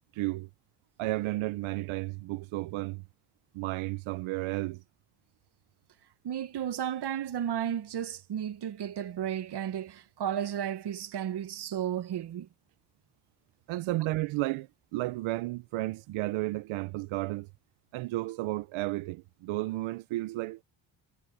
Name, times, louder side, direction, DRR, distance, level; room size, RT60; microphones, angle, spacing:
voice 1, 0.1-0.5 1.0-3.0 3.5-4.8 13.7-17.5 17.9-20.6, right 18 dB, 80° right, 0.9 m, -33 dB
voice 2, 6.2-12.5, right 9 dB, 55° right, 1.4 m, -33 dB
supercardioid pair, 65°, 48 cm